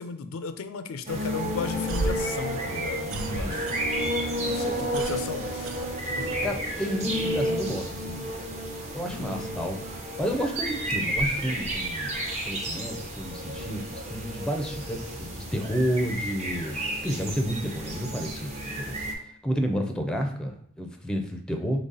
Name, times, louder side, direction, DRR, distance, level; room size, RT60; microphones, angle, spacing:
voice 1, 0.0-5.7 9.1-9.6, left 5 dB, 85° left, 10 dB, 0.4 m, -36 dB
sound 1, 1.1-19.1, equal, 35° right, 0.7 m, -31 dB
sound 2, 1.9-4.2 4.5-6.4, right 2 dB, 75° right, 0.4 m, -34 dB
voice 2, 3.1-3.6 6.2-8.3 8.9-9.8 10.2-12.2 12.4-19.0 19.4-21.8, equal, 5° left, 4 dB, 0.5 m, -31 dB
4.0 x 3.2 x 3.9 m, 0.67 s
head